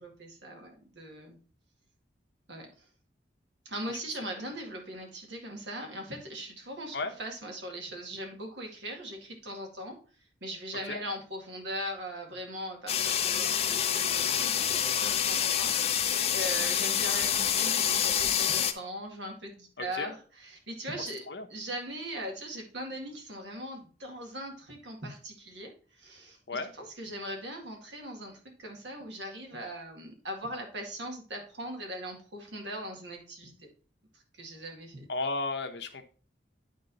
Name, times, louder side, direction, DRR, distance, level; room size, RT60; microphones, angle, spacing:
voice 1, 0.0-1.4 2.5-2.9 3.7-10.0 10.4-21.2 21.5-25.7 26.0-26.4 26.8-33.7 34.3-35.1, equal, 70° right, 2 dB, 2.0 m, -40 dB
sound 1, 12.9-18.7, left 9 dB, 35° left, 0.5 m, -27 dB
voice 2, 19.8-20.1 21.3-21.5 26.5-26.7 35.1-36.0, left 3 dB, 65° left, 6 dB, 0.9 m, -33 dB
9.7 x 3.8 x 4.0 m, 0.40 s
head